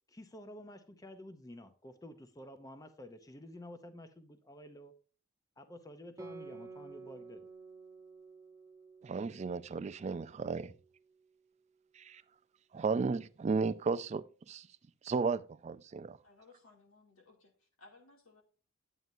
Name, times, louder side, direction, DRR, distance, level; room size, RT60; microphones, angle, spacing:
voice 1, 0.1-4.9 5.6-7.5, left 1 dB, 15° left, 0.6 m, -51 dB
Guitar, 6.2-11.1, right 4 dB, 15° right, 0.9 m, -52 dB
voice 2, 9.0-10.7 11.9-12.2 12.7-14.7 15.0-16.2, right 4 dB, 35° right, 0.3 m, -34 dB
voice 3, 16.2-18.4, left 3 dB, 85° left, 2.7 m, -61 dB
9.3 x 9.0 x 2.7 m
head